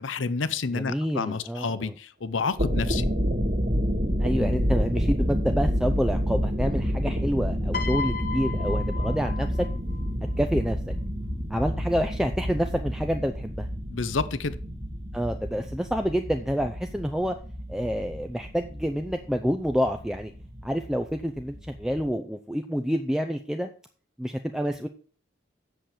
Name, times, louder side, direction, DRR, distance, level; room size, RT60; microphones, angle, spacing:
voice 1, 0.0-3.1 13.9-14.6, left 4 dB, 85° left, 15 dB, 0.7 m, -29 dB
voice 2, 0.7-2.0 2.7-2.9 4.2-9.7 10.4-10.9 11.5-13.7 15.1-17.4 17.7-20.3 20.6-23.7 24.2-24.9, equal, 5° right, 6 dB, 0.5 m, -28 dB
sound 1, 2.5-22.1, equal, 50° right, 2.1 m, -29 dB
Piano, 7.7-10.1 11.1-11.4, left 5 dB, 50° left, 0.8 m, -34 dB
7.9 x 6.6 x 7.5 m, 0.42 s
head